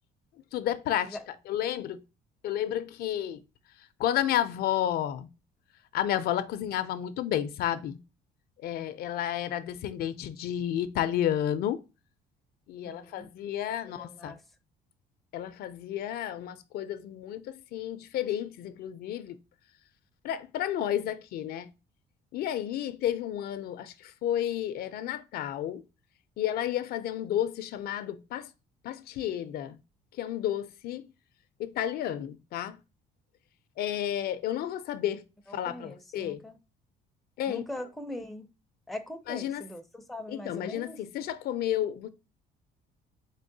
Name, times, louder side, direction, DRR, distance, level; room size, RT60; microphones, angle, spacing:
voice 1, 0.5-1.2 1.5-2.0 2.4-3.4 4.0-5.3 5.9-8.0 8.6-11.8 12.7-14.4 15.3-19.4 20.2-21.7 22.3-25.8 26.4-28.5 28.8-29.8 30.2-31.0 31.6-32.8 33.8-35.2 35.5-36.4 37.4-37.6 39.3-39.6 40.3-42.1, left 11 dB, 65° left, 0.4 m, -31 dB
voice 2, 12.8-13.3 13.8-14.4 35.5-36.6 37.5-38.5 38.9-41.0, left 1 dB, ahead, 0.5 m, -41 dB
4.0 x 3.6 x 2.6 m
cardioid pair, 110°, 17 cm